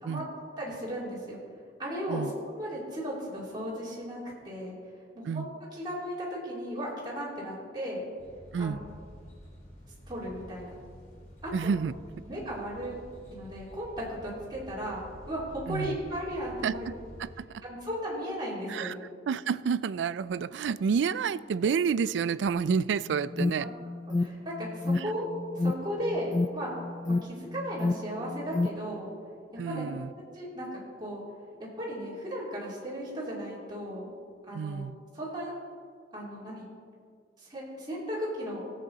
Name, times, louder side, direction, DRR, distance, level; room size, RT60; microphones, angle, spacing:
voice 1, 0.6-1.4 1.8-2.2 2.6-4.2 4.4-4.7 5.1-8.1 8.6-8.8 10.1-10.7 11.4-11.7 12.3-13.0 13.3-16.8 17.6-19.0 23.6-23.7 24.2-25.2 25.5-26.7 27.1-29.1 29.5-29.9 30.3-31.2 31.6-34.1 34.5-34.9 35.1-35.5 36.1-36.7 37.4-38.7, equal, 25° right, -7 dB, 2.9 m, -36 dB
sound 1, 8.2-17.4, equal, 45° left, 3.1 m, -49 dB
voice 2, 11.5-12.0 15.7-16.0 16.6-16.9 17.2-17.6 18.7-19.0 19.3-23.7 25.0-25.1 29.6-30.1 34.5-35.0, right 6 dB, 85° right, 18 dB, 0.3 m, -29 dB
Alarm, 23.1-29.0, left 2 dB, 15° left, 0.3 m, -31 dB
17.5 x 7.9 x 4.0 m, 2.1 s
head